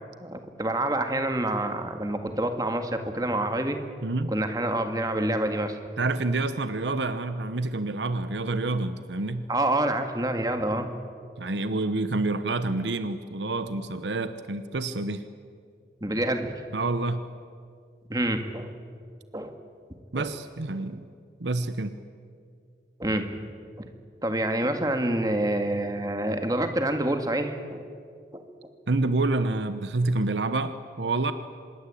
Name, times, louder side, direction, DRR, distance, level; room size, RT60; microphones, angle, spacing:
voice 1, 0.2-3.8 4.3-5.8 9.5-10.9 16.0-16.6 18.1-18.7 19.3-19.5 20.1-20.3 23.0-23.3 23.8-23.9 24.2-27.8 28.3-28.4, right 1 dB, 20° right, 6 dB, 1.9 m, -27 dB
voice 2, 6.0-9.5 11.4-15.2 16.7-17.2 20.1-21.0 21.4-21.9 28.9-31.3, right 2 dB, 85° right, 11 dB, 1.0 m, -28 dB
26.0 x 21.5 x 8.5 m, 2.2 s
head